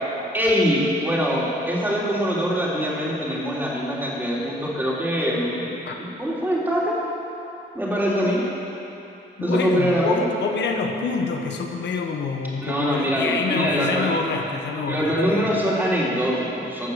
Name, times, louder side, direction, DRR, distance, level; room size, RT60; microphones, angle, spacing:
voice 1, 0.3-7.0 7.7-8.4 9.4-10.2 12.6-14.1 14.9-16.9, equal, 10° right, -5 dB, 3.2 m, -23 dB
voice 2, 9.4-15.5, left 4 dB, 60° left, 3 dB, 1.3 m, -27 dB
13.0 x 6.6 x 7.3 m, 2.9 s
cardioid pair, 90°, 20 cm